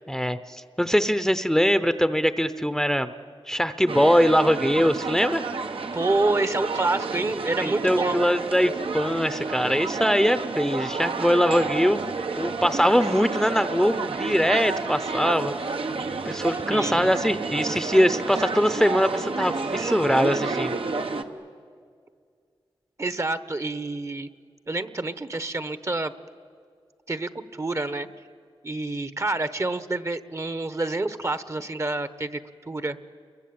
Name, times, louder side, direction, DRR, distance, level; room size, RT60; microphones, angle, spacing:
voice 1, 0.1-3.1 3.5-5.4 7.6-12.0 12.4-15.5 16.2-20.8, equal, 5° left, 11 dB, 0.8 m, -22 dB
sound 1, 3.9-21.2, right 4 dB, 75° right, 1.3 m, -30 dB
voice 2, 5.9-8.2 16.5-17.1 17.7-17.8 23.0-24.3 24.7-26.1 27.1-28.1 28.6-33.0, right 2 dB, 30° right, 12 dB, 1.1 m, -28 dB
29.5 x 22.5 x 8.8 m, 2.1 s
wide cardioid pair, 85°, 9 cm